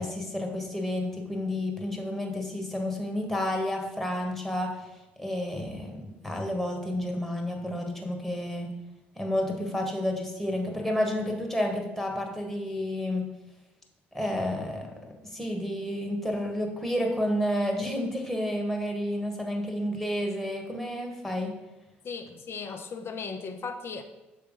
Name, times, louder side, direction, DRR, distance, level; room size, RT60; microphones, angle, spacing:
voice 1, 0.0-4.7 5.2-8.7 9.1-13.3 14.1-14.9 15.2-21.6, left 1 dB, 5° left, 1 dB, 1.6 m, -30 dB
voice 2, 22.0-24.0, left 5 dB, 45° left, 6 dB, 0.8 m, -37 dB
6.8 x 3.4 x 5.2 m, 1.0 s
figure-of-eight pair, 50°, 6 cm